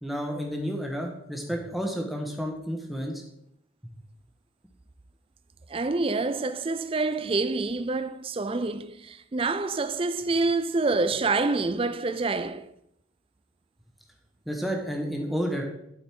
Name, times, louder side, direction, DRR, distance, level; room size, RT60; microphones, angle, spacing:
voice 1, 0.0-3.2 14.4-15.6, equal, ahead, 1.4 m, -31 dB
voice 2, 5.7-12.7, right 3 dB, 25° right, 0.4 m, -27 dB
12.0 x 5.6 x 4.5 m
head